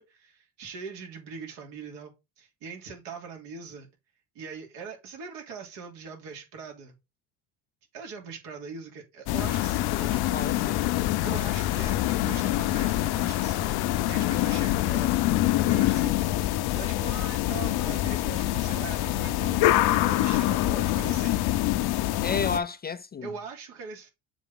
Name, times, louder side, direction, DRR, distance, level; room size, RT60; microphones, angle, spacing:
voice 1, 0.0-3.9 4.3-7.0 7.9-10.5 11.2-19.6 19.9-21.4 23.2-24.1, right 5 dB, 75° right, 3.1 m, -42 dB
sound 1, 9.3-22.6, left 15 dB, 60° left, 0.8 m, -25 dB
sound 2, 9.4-16.1, left 17 dB, 80° left, 1.0 m, -37 dB
voice 2, 9.9-10.9 22.2-23.3, left 5 dB, 25° left, 0.4 m, -32 dB
7.2 x 4.4 x 3.7 m
supercardioid pair, 80°, 42 cm